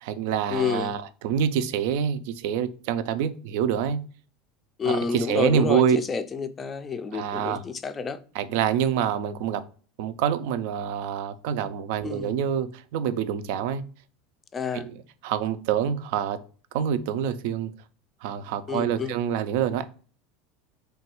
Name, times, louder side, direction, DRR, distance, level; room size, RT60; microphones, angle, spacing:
voice 1, 0.0-4.0 4.9-6.0 7.1-7.6 8.3-9.6 10.0-13.8 14.7-16.4 16.7-17.7 18.2-19.8, right 8 dB, 70° right, 0.3 m, -26 dB
voice 2, 0.5-0.9 4.8-8.2 12.0-12.3 14.5-14.9 18.7-19.1, left 5 dB, 30° left, 0.3 m, -29 dB
3.2 x 2.2 x 2.9 m
hypercardioid pair, 100°, 0 cm